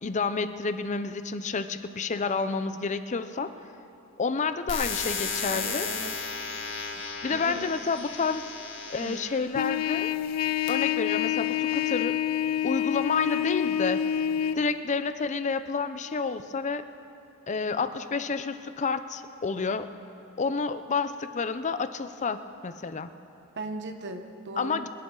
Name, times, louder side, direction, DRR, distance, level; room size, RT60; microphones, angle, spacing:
voice 1, 0.0-3.5 4.2-5.9 7.2-8.5 8.9-10.1 10.7-12.2 12.6-14.1 14.6-16.8 17.5-19.9 20.4-23.1 24.6-24.9, left 4 dB, 30° left, 11 dB, 0.5 m, -29 dB
sound 1, 4.7-9.4 10.1-10.7, left 5 dB, 55° left, 1.7 m, -34 dB
voice 2, 5.5-6.2 7.3-7.7 9.0-9.2 23.6-24.8, right 2 dB, 50° right, 6 dB, 0.9 m, -38 dB
Trumpet, 9.5-14.6, left 10 dB, 85° left, 0.3 m, -27 dB
26.5 x 11.0 x 3.8 m, 3.0 s
head